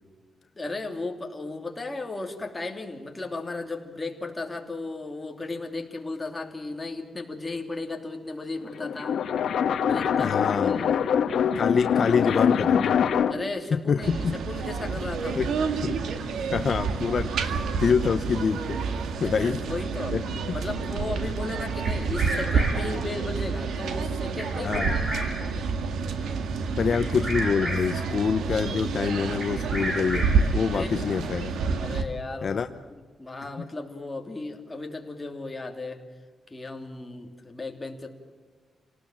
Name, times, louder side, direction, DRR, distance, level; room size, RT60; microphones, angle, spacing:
voice 1, 0.5-9.2 9.8-11.0 13.3-15.6 19.2-20.2 20.5-25.3 26.8-27.0 29.5-29.6 30.7-31.2 31.8-32.6 33.2-36.0 36.5-38.1, left 3 dB, 15° left, 3 dB, 2.9 m, -35 dB
sound 1, 8.6-13.5, left 7 dB, 75° left, 1.2 m, -24 dB
voice 2, 10.2-11.0 11.5-12.9 13.7-14.3 15.4-15.5 15.8-15.9 16.5-18.8 19.2-19.6 20.1-20.2 20.5-20.6 24.6-24.9 26.8-30.3 30.5-31.5 32.4-32.7, left 6 dB, 50° left, 9 dB, 0.8 m, -26 dB
sound 2, 14.0-32.0, right 5 dB, 90° right, 2.0 m, -29 dB
Bird vocalization bird call bird song, 21.8-23.0 24.4-25.6 26.9-28.1 29.4-30.6, right 1 dB, 35° right, 7.0 m, -33 dB
28.0 x 18.5 x 7.4 m, 1.5 s
wide cardioid pair, 125°, 0 cm